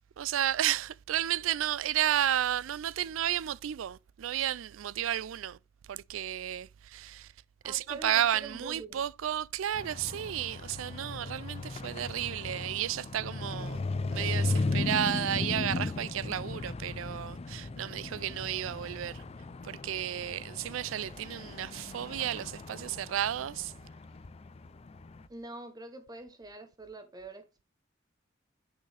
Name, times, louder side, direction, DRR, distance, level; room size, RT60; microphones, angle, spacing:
voice 1, 0.2-5.6 5.9-7.3 7.6-13.8 14.1-19.2 19.6-23.7, right 11 dB, 75° right, 0.4 m, -32 dB
voice 2, 7.6-9.0 25.3-27.6, right 2 dB, 20° right, 0.8 m, -45 dB
sound 1, 9.7-25.3, left 3 dB, 30° left, 0.4 m, -37 dB
8.1 x 6.1 x 3.3 m
head